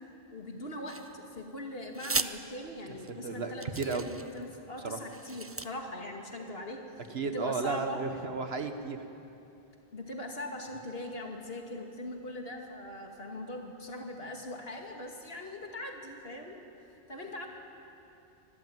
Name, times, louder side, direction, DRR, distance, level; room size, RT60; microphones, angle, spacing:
voice 1, 0.3-6.8 7.3-8.0 9.9-16.6 17.1-17.5, left 1 dB, 65° left, 2 dB, 2.5 m, -41 dB
sound 1, 0.9-1.4 1.9-2.3 3.1-3.2 3.6-4.4 5.0-5.7, right 3 dB, 20° right, 0.3 m, -36 dB
voice 2, 3.2-4.0 4.8-5.0 7.1-9.0, right 4 dB, 65° right, 7 dB, 1.6 m, -33 dB
24.5 x 14.0 x 9.4 m, 2.9 s
omnidirectional pair, 1.1 m